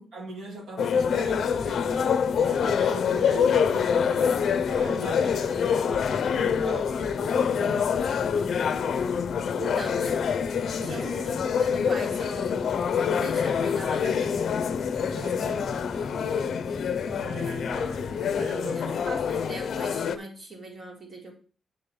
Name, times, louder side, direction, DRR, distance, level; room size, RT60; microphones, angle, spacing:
voice 1, 0.1-8.0 10.7-11.4 14.0-14.4 15.0-16.0 17.1-18.9, right 1 dB, 75° right, 2.1 m, -39 dB
sound 1, 0.8-20.2, left 7 dB, 65° left, 0.6 m, -26 dB
sound 2, 1.0-18.4, left 3 dB, 20° left, 0.5 m, -39 dB
voice 2, 9.5-10.2 10.8-11.2 11.6-12.6 13.2-14.3 18.7-21.3, right 2 dB, 30° right, 2.4 m, -40 dB
8.6 x 3.9 x 6.9 m
wide cardioid pair, 140°, 0 cm